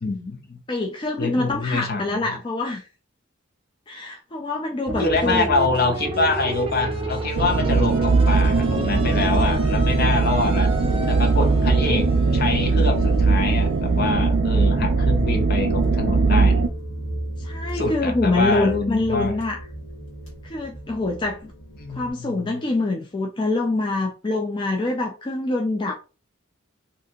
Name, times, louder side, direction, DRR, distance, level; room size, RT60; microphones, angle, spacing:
voice 1, 0.0-0.6 1.2-2.2 5.0-10.7 11.1-16.7 17.7-19.4 21.8-22.6, left 3 dB, 50° left, 0.7 m, -25 dB
voice 2, 0.7-2.9 3.9-5.5 11.5-11.7 17.4-19.6 20.4-21.5 21.9-25.9, left 2 dB, 25° left, 0.4 m, -25 dB
sound 1, 4.8-14.4, right 1 dB, 25° right, 0.7 m, -32 dB
sound 2, 5.9-22.1, right 1 dB, 75° left, 1.4 m, -34 dB
sound 3, 7.4-16.7, right 4 dB, 65° right, 0.4 m, -20 dB
2.7 x 2.5 x 3.6 m
head